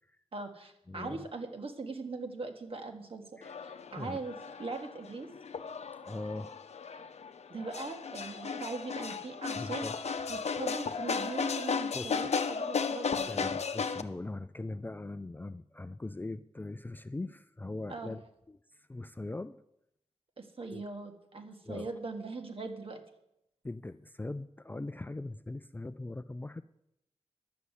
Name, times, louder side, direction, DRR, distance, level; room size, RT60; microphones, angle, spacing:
voice 1, 0.3-5.3 7.5-9.9 10.3-13.3 17.9-18.1 20.4-23.0, right 3 dB, 55° right, 5 dB, 1.6 m, -41 dB
voice 2, 0.9-1.3 3.4-3.6 4.0-4.2 6.0-6.5 9.6-10.0 11.9-12.3 13.3-18.2 18.5-19.6 20.7-20.8 21.6-21.9 23.6-26.6, left 2 dB, 15° left, 12 dB, 0.4 m, -40 dB
sound 1, 3.4-14.0, left 5 dB, 70° left, 0.7 m, -35 dB
11.0 x 7.0 x 8.1 m, 0.81 s
wide cardioid pair, 120°, 11 cm